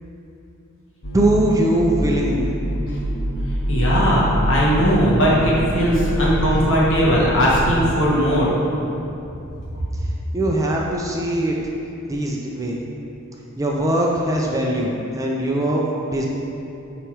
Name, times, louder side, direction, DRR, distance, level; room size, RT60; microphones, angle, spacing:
sound 1, 1.0-7.9, equal, 75° left, 1.0 m, -25 dB
voice 1, 1.1-2.5 10.3-11.6 12.1-12.8 13.6-16.3, right 1 dB, 15° right, -2 dB, 0.4 m, -21 dB
voice 2, 3.7-8.5 9.7-9.8, equal, 60° left, -6 dB, 1.5 m, -18 dB
8.1 x 3.0 x 4.6 m, 2.8 s
head